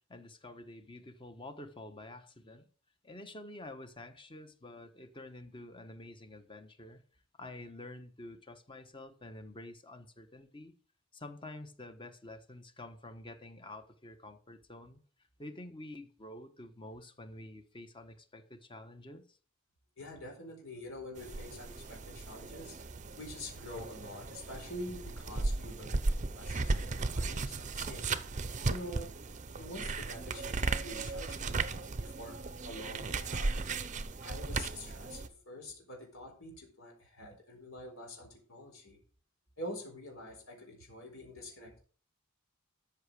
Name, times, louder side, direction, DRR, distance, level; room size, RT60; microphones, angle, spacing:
voice 1, 0.1-2.7 3.0-7.0 7.4-10.7 11.1-15.0 15.4-19.4, left 1 dB, 25° left, 1.2 m, -48 dB
voice 2, 20.0-22.8 23.2-28.2 28.6-29.1 29.6-32.3 32.6-33.5 34.2-39.0 39.6-41.8, left 1 dB, 70° left, 4.2 m, -46 dB
sound 1, 21.2-35.3, right 3 dB, 35° right, 0.6 m, -36 dB
13.5 x 5.9 x 4.9 m
head